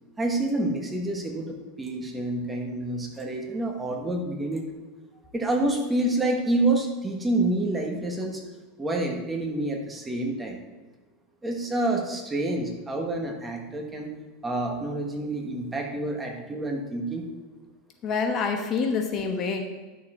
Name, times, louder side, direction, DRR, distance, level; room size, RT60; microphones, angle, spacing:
voice 1, 0.2-4.6 5.3-8.4 8.8-10.6 11.4-14.1 14.4-17.3, right 2 dB, 15° right, 2 dB, 1.4 m, -28 dB
voice 2, 18.0-19.7, left 5 dB, 35° left, 4 dB, 1.1 m, -26 dB
11.0 x 6.7 x 4.4 m, 1.3 s
supercardioid pair, 140°, 0 cm